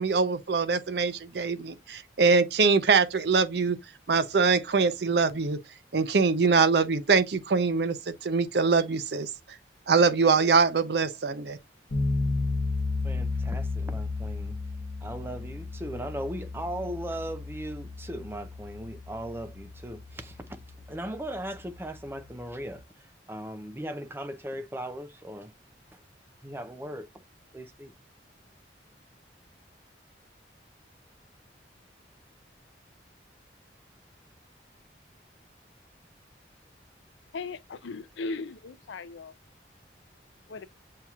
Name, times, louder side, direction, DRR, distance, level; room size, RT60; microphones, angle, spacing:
voice 1, 0.0-3.8 4.1-5.6 5.9-9.3 9.9-11.6, right 4 dB, 65° right, 0.5 m, -23 dB
sound 1, 11.9-22.8, left 3 dB, 50° left, 0.8 m, -34 dB
voice 2, 13.0-14.6 15.0-20.6 20.9-25.5 25.9-26.0 26.4-27.1 27.5-27.9, right 1 dB, 15° right, 0.5 m, -38 dB
voice 3, 37.3-39.3 40.5-40.7, left 3 dB, 85° left, 0.5 m, -37 dB
7.4 x 2.8 x 2.3 m
head